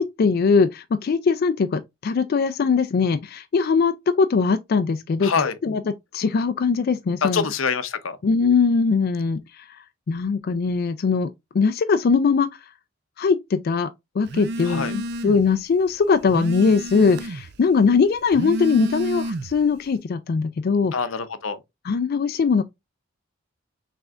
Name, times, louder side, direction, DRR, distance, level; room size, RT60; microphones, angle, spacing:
voice 1, 0.0-7.4 8.2-9.8 10.1-11.3 11.5-12.6 13.2-13.9 14.2-20.9 21.8-22.6, left 5 dB, 50° left, 0.3 m, -21 dB
voice 2, 5.2-5.6 7.2-8.2 14.6-14.9 20.9-21.6, left 5 dB, 85° left, 0.7 m, -25 dB
Telephone, 14.3-15.5 15.9-17.6 18.2-19.7, right 1 dB, 55° right, 0.5 m, -30 dB
6.0 x 3.3 x 2.4 m
head